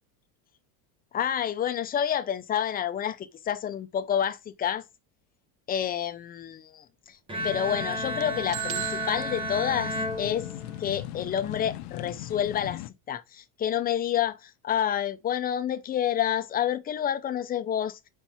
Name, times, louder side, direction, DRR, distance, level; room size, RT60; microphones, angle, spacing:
voice 1, 1.1-4.8 5.7-7.2 7.4-10.5 10.8-12.8 13.1-18.0, left 9 dB, 20° left, 0.5 m, -29 dB
Bowed string instrument, 7.3-11.0, equal, 10° right, 1.3 m, -33 dB
sound 1, 7.4-12.9, left 14 dB, 75° left, 0.8 m, -39 dB
sound 2, 8.5-10.5, right 17 dB, 55° right, 0.6 m, -37 dB
4.5 x 4.5 x 5.6 m
cardioid pair, 145°, 46 cm